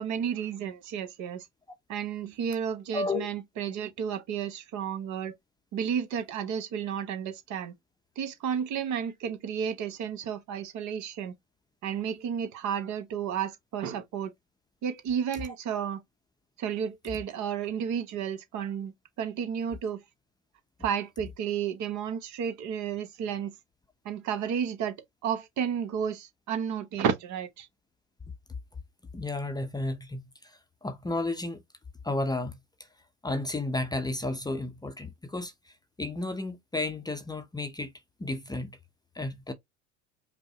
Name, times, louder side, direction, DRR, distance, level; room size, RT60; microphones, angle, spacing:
voice 1, 0.0-1.5 1.9-5.3 5.7-7.7 8.2-11.3 11.8-14.3 14.8-16.0 16.6-20.0 20.8-23.5 24.0-25.0 25.2-27.7, right 8 dB, 50° right, 1.0 m, -32 dB
voice 2, 2.9-3.3 29.1-31.6 32.0-32.6 33.2-37.9 38.2-38.8 39.1-39.5, left 2 dB, 10° left, 0.7 m, -33 dB
5.2 x 2.0 x 2.9 m
hypercardioid pair, 75°, 36 cm